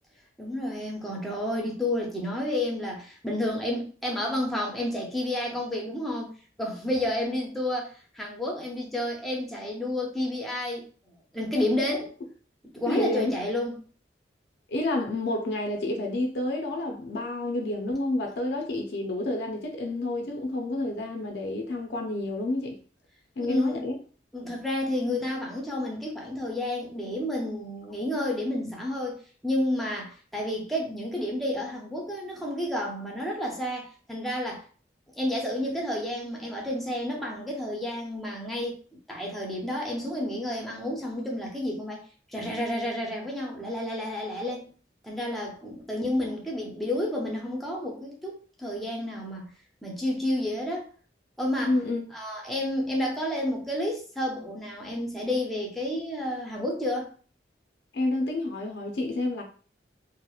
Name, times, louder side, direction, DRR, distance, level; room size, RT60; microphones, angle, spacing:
voice 1, 0.4-10.9 11.3-12.1 12.7-13.8 23.4-23.9 24.3-34.7 35.2-42.0 42.3-44.7 45.0-49.5 49.8-50.9 51.4-51.7 52.1-57.1, left 1 dB, ahead, 0.4 m, -30 dB
voice 2, 12.9-13.4 14.7-22.8 23.4-24.0 51.6-52.0 57.9-59.4, left 2 dB, 65° left, 0.4 m, -29 dB
2.8 x 2.0 x 2.3 m
head